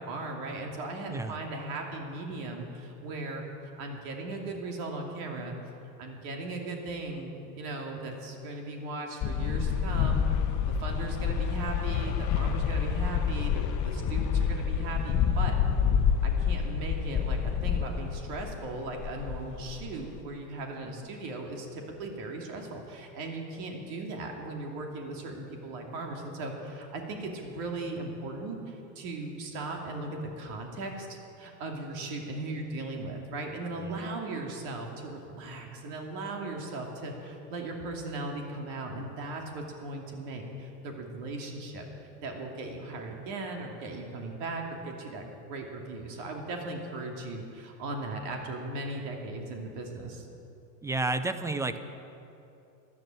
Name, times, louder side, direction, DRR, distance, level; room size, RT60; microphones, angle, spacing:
voice 1, 0.0-5.5 6.0-10.3 10.7-15.5 16.2-41.8 42.2-50.3, right 2 dB, 65° right, 2 dB, 2.8 m, -38 dB
sound 1, 9.2-18.6 18.9-20.2, left 7 dB, 35° left, 1.1 m, -28 dB
voice 2, 33.8-34.1 50.8-51.8, right 3 dB, 5° right, 11 dB, 0.5 m, -31 dB
14.0 x 11.0 x 9.0 m, 2.8 s
supercardioid pair, 125°, 49 cm